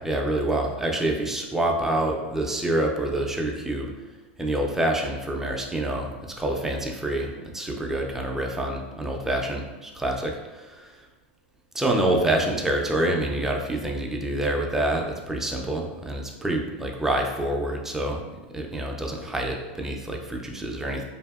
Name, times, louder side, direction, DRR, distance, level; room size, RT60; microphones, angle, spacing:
voice 1, 0.0-3.9 4.4-11.0 11.7-18.2 18.5-21.0, right 1 dB, 5° right, 1 dB, 0.3 m, -27 dB
2.6 x 2.6 x 2.3 m, 1.2 s
supercardioid pair, 135°, 6 cm